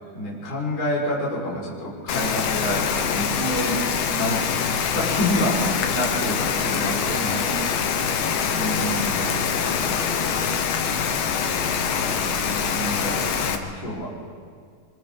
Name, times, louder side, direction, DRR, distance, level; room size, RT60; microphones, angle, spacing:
voice 1, 0.0-3.8 4.1-7.5 8.5-9.2 9.8-10.4 12.0-14.1, equal, 35° left, -6 dB, 5.3 m, -29 dB
Rain, 2.1-13.6, left 6 dB, 80° left, 2.8 m, -24 dB
voice 2, 7.1-9.4, right 5 dB, 65° right, 2 dB, 2.3 m, -38 dB
30.0 x 25.5 x 3.6 m, 2.1 s
omnidirectional pair, 3.9 m